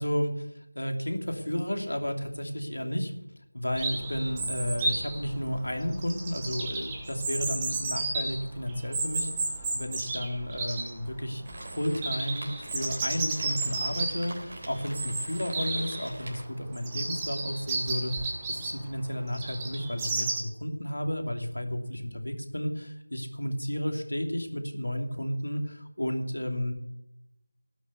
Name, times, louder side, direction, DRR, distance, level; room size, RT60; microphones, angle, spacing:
voice 1, 0.0-3.1 3.5-11.4 11.7-26.7, equal, 80° left, 3 dB, 2.8 m, -32 dB
Chirp tweet, 3.7-20.4, right 3 dB, 10° right, 1.2 m, -33 dB
Rain, 11.4-16.5, right 1 dB, 35° right, 3.6 m, -44 dB
18.0 x 6.5 x 7.0 m, 0.84 s
figure-of-eight pair, 170°, 0 cm